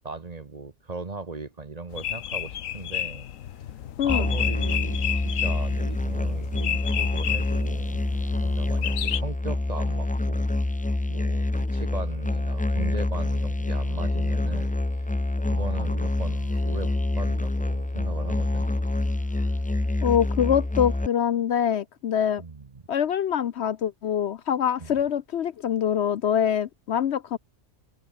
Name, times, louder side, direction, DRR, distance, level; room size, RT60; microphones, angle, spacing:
voice 1, 0.0-3.3 4.0-8.0 8.4-10.5 11.1-15.1 15.4-18.7 22.4-22.8 24.8-25.0, right 3 dB, 35° right, 1.2 m, -38 dB
sound 1, 1.9-9.2, left 10 dB, 85° left, 1.2 m, -32 dB
Musical instrument, 4.1-21.1, left 1 dB, 10° left, 0.4 m, -26 dB
sound 2, 16.2-17.1 18.2-21.3, left 1 dB, 30° left, 6.3 m, -60 dB
voice 2, 20.0-22.4 22.9-27.4, left 9 dB, 60° left, 0.9 m, -24 dB
omnidirectional pair, 1.3 m